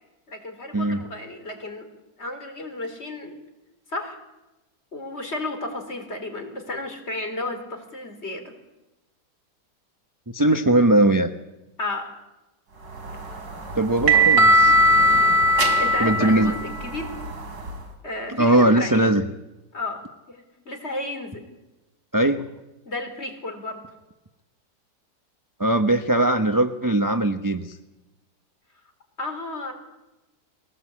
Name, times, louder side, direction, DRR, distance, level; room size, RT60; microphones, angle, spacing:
voice 1, 0.3-1.9 2.2-3.4 3.9-4.2 4.9-8.5 11.8-12.1 15.8-17.1 18.0-19.0 19.7-21.5 22.9-23.8 29.2-29.7, left 2 dB, 35° left, 5 dB, 4.1 m, -33 dB
voice 2, 10.3-11.3 13.7-14.8 16.0-16.5 18.3-19.2 22.1-22.4 25.6-27.8, right 1 dB, 15° right, 8 dB, 0.7 m, -20 dB
sound 1, 13.0-17.8, right 1 dB, 65° right, 3.4 m, -19 dB
22.5 x 18.5 x 8.6 m, 1.0 s
omnidirectional pair, 1.8 m